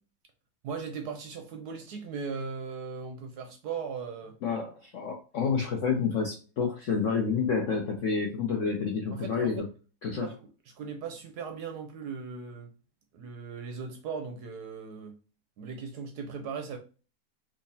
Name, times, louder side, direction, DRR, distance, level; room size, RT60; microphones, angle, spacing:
voice 1, 0.6-4.4 9.1-9.7 10.1-12.7 13.1-15.1 15.6-16.8, right 5 dB, 70° right, 1.0 m, -38 dB
voice 2, 4.4-9.7 10.0-10.3, left 5 dB, 70° left, 0.7 m, -29 dB
3.6 x 2.9 x 2.7 m
omnidirectional pair, 2.0 m